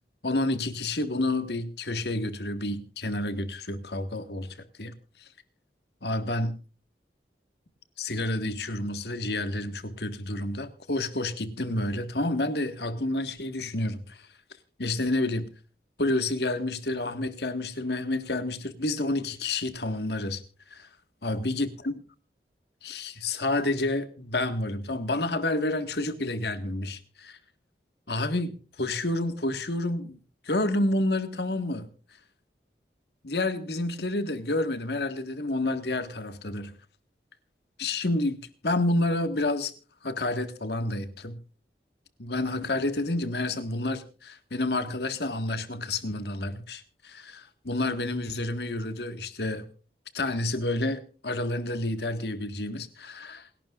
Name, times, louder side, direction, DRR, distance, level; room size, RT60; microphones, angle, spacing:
voice 1, 0.2-4.5 4.8-4.9 6.0-6.5 8.0-14.3 14.8-15.5 16.0-20.4 20.7-20.9 21.2-21.9 22.8-27.4 28.1-30.2 30.4-31.9 33.2-36.7 37.8-38.4 38.6-39.7 40.0-41.4 42.2-49.7 50.1-53.5, left 2 dB, 70° left, 1.8 m, -29 dB
28.0 x 12.0 x 2.5 m
head